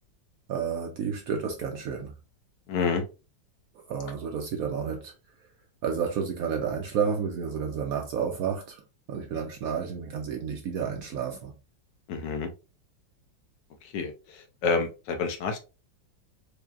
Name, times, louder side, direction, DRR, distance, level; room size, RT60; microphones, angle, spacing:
voice 1, 0.5-2.1 3.9-5.1 5.8-8.8 9.1-11.5, right 6 dB, 75° right, 0.8 m, -31 dB
voice 2, 2.7-3.0 12.1-12.5 13.9-15.6, left 4 dB, 70° left, 1.3 m, -28 dB
4.9 x 2.7 x 2.4 m
omnidirectional pair, 2.0 m